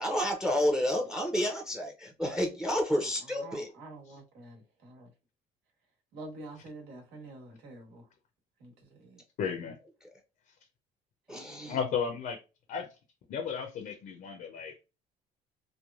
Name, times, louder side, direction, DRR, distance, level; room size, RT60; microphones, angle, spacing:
voice 1, 0.0-3.7 11.3-11.8, equal, 5° right, 0.6 m, -30 dB
voice 2, 3.4-5.1 6.1-8.0 8.6-9.2 11.3-11.8, right 2 dB, 80° right, 1.3 m, -47 dB
voice 3, 9.4-9.8 11.7-12.4 12.7-12.9 13.3-14.8, left 6 dB, 60° left, 0.6 m, -34 dB
3.2 x 2.1 x 2.3 m
cardioid pair, 110°, 17 cm